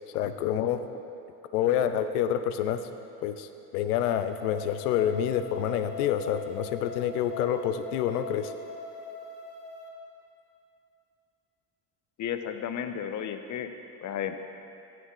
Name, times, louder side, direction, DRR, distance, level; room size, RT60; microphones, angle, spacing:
voice 1, 0.1-0.8 1.5-2.8 3.2-8.5, left 10 dB, 85° left, 10 dB, 0.6 m, -27 dB
sound 1, 3.9-9.9, left 3 dB, 65° left, 1.1 m, -42 dB
voice 2, 12.2-13.7 14.0-14.3, left 9 dB, 40° left, 8 dB, 0.7 m, -33 dB
8.7 x 6.0 x 4.8 m, 2.8 s
hypercardioid pair, 65°, 45 cm